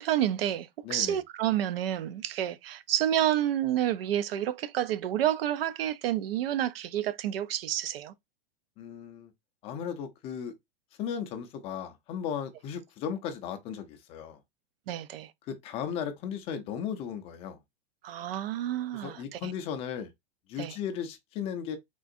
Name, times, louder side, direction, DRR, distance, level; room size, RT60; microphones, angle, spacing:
voice 1, 0.0-8.1 14.9-15.3 18.0-19.5 20.6-20.8, right 11 dB, 80° right, 0.5 m, -29 dB
voice 2, 0.8-1.2 8.8-9.3 9.6-10.5 11.0-14.4 15.5-17.6 18.9-20.1 20.5-21.8, left 8 dB, 20° left, 0.4 m, -36 dB
3.7 x 2.5 x 2.5 m
supercardioid pair, 150°, 29 cm